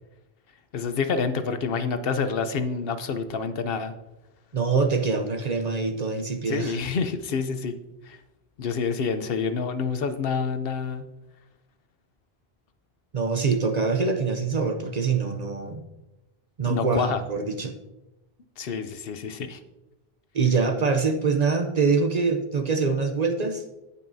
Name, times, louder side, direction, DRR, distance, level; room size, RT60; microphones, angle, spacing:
voice 1, 0.7-3.9 6.5-7.7 8.0-8.2 8.6-11.1 16.6-17.2 18.6-19.6, left 5 dB, 65° left, 10 dB, 0.9 m, -28 dB
voice 2, 4.5-6.8 13.1-15.8 16.6-17.7 20.3-23.6, right 4 dB, 45° right, 6 dB, 0.7 m, -24 dB
16.0 x 5.5 x 2.7 m, 0.99 s
omnidirectional pair, 1.1 m